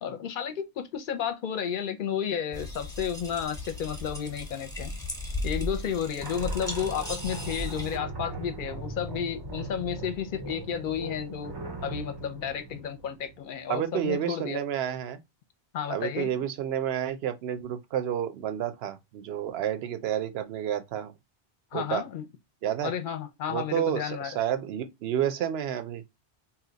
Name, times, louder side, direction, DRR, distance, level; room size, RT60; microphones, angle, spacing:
voice 1, 0.0-4.9 5.4-11.6 11.8-14.6 15.7-16.3 21.7-22.2 22.8-24.3, left 8 dB, 55° left, 0.7 m, -32 dB
sound 1, 2.5-8.0, left 1 dB, 5° left, 0.7 m, -36 dB
sound 2, 6.2-13.6, right 2 dB, 35° right, 0.4 m, -39 dB
voice 2, 13.7-15.2 15.9-21.1 21.7-22.0 22.6-22.9 23.5-26.0, right 10 dB, 70° right, 0.8 m, -30 dB
2.8 x 2.2 x 3.8 m
omnidirectional pair, 1.1 m